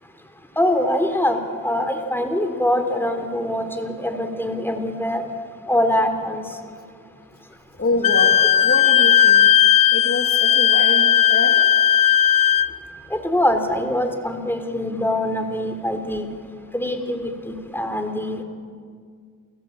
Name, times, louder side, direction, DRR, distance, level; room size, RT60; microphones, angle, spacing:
voice 1, 0.6-5.2 5.7-6.5 13.1-16.3 16.7-18.4, left 1 dB, 5° left, 6 dB, 3.7 m, -23 dB
voice 2, 7.8-9.5 9.9-11.7, left 2 dB, 40° left, 3 dB, 3.0 m, -26 dB
Wind instrument woodwind instrument, 8.0-12.7, left 9 dB, 80° left, 0.8 m, -16 dB
29.5 x 18.0 x 8.8 m, 2.1 s
cardioid pair, 55°, 33 cm